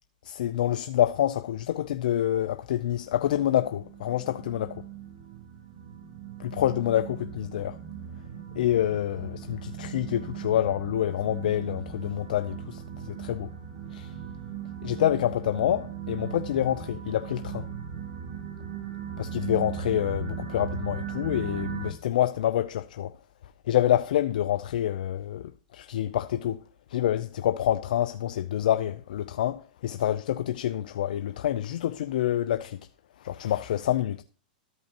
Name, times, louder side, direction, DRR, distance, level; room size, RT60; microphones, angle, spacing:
voice 1, 0.2-4.8 6.4-7.8 8.6-13.5 13.9-14.1 14.8-17.7 19.2-23.1 23.7-26.6 26.9-32.8 33.2-34.2, left 11 dB, 75° left, 0.4 m, -27 dB
sound 1, 3.1-21.9, right 8 dB, 45° right, 2.6 m, -38 dB
13.5 x 5.5 x 2.9 m
hypercardioid pair, 130°, 5 cm